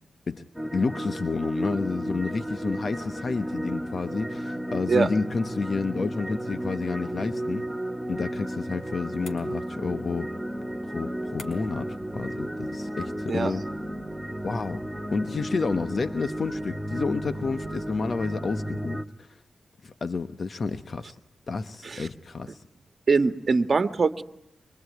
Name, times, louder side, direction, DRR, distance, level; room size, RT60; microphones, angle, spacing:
sound 1, 0.5-19.0, right 1 dB, 5° right, 1.4 m, -33 dB
voice 1, 0.7-7.7 8.1-10.3 10.8-13.6 14.4-14.8 15.1-19.3 19.8-21.2 21.5-22.6, left 4 dB, 55° left, 10 dB, 1.0 m, -30 dB
sound 2, 9.2-10.0 11.4-11.9, left 4 dB, 80° left, 4.4 m, -47 dB
voice 2, 23.1-24.2, right 4 dB, 50° right, 10 dB, 1.5 m, -22 dB
25.0 x 24.5 x 9.5 m, 0.79 s
cardioid pair, 80°, 0 cm